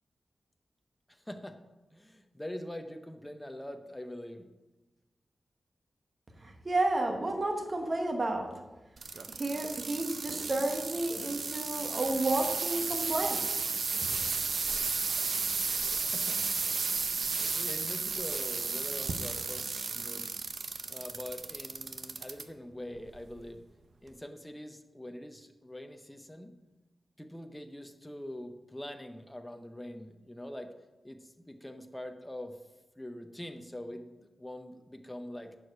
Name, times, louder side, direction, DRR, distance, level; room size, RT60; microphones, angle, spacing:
voice 1, 1.1-1.6 1.9-4.5 15.8-16.5 17.1-20.3 20.9-23.7 24.0-26.5 27.2-30.7 31.0-32.6 33.0-35.5, left 1 dB, 5° left, 6 dB, 0.7 m, -44 dB
voice 2, 6.4-8.5 9.3-13.6, right 2 dB, 30° right, 3 dB, 1.1 m, -31 dB
sound 1, 9.0-22.4 23.0-23.4 24.1-24.2, right 4 dB, 55° right, 0.6 m, -33 dB
11.0 x 4.9 x 5.9 m, 1.1 s
wide cardioid pair, 170°, 0 cm